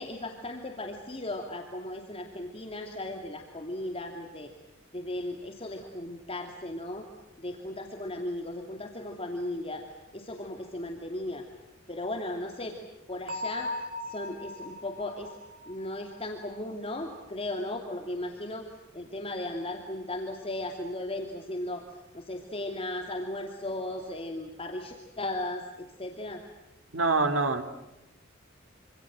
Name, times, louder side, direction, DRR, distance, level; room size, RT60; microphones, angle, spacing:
voice 1, 0.0-4.5 4.9-7.1 7.4-9.8 10.1-11.4 11.9-12.8 13.1-13.7 14.0-15.4 15.7-18.7 18.9-21.9 22.1-26.4, left 1 dB, 30° left, 2 dB, 2.7 m, -36 dB
Bell, 13.3-16.9, left 2 dB, 45° right, 2.9 m, -39 dB
voice 2, 26.9-27.6, right 3 dB, 80° right, 7 dB, 2.8 m, -25 dB
27.0 x 26.5 x 7.6 m, 0.99 s
head